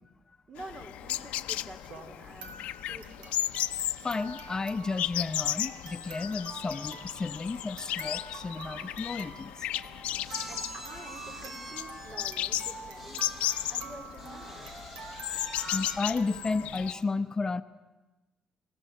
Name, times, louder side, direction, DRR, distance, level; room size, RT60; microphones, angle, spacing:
voice 1, 0.5-3.7 10.5-14.7, right 2 dB, 40° right, 5 dB, 3.9 m, -48 dB
sound 1, 0.6-16.9, left 13 dB, 85° left, 0.7 m, -35 dB
sound 2, 1.8-17.0, right 4 dB, 80° right, 2.3 m, -47 dB
voice 2, 4.0-9.7 15.7-17.6, left 4 dB, 30° left, 11 dB, 0.8 m, -32 dB
sound 3, 8.8-8.9 9.1-9.3 10.2-13.8 14.2-16.0, right 1 dB, 25° right, 6.4 m, -46 dB
30.0 x 17.0 x 7.7 m, 1.2 s
supercardioid pair, 65°, 2 cm